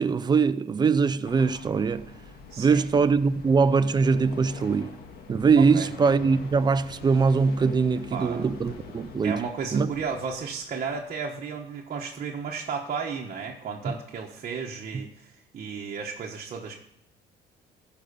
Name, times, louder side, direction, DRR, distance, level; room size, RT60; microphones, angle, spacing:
voice 1, 0.0-2.1 2.6-4.9 5.3-9.4 9.7-9.9 14.9-15.0, right 5 dB, 25° right, 0.5 m, -22 dB
sound 1, 1.2-11.2, left 4 dB, 65° left, 1.7 m, -45 dB
voice 2, 2.5-2.8 5.6-5.9 8.1-8.5 9.2-16.7, right 5 dB, 45° right, 1.2 m, -34 dB
14.0 x 5.3 x 6.7 m
cardioid pair, 110°, 17 cm